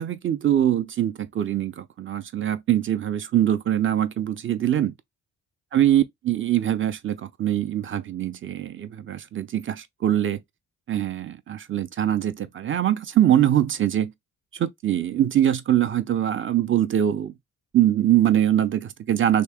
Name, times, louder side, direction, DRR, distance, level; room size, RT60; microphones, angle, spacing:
voice 1, 0.0-4.9 5.7-10.4 10.9-14.1 14.5-17.3 17.7-19.4, right 11 dB, 40° right, 0.6 m, -23 dB
2.9 x 2.8 x 3.5 m
cardioid pair, 90°, 30 cm